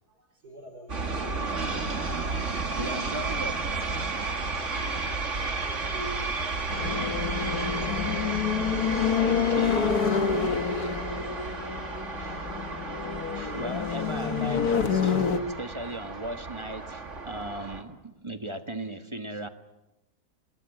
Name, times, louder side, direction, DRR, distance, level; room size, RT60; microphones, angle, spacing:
voice 1, 0.2-1.4 5.6-8.2 9.1-10.4, right 1 dB, 75° right, 5 dB, 5.5 m, -45 dB
sound 1, 0.9-17.8, right 3 dB, 45° right, 2.5 m, -33 dB
voice 2, 2.8-3.6 9.2-9.9 12.2-12.4 13.3-19.5, right 1 dB, 20° right, 8 dB, 1.3 m, -37 dB
sound 2, 6.7-15.4, left 7 dB, 70° left, 1.8 m, -28 dB
26.0 x 19.5 x 9.0 m, 0.98 s
omnidirectional pair, 1.7 m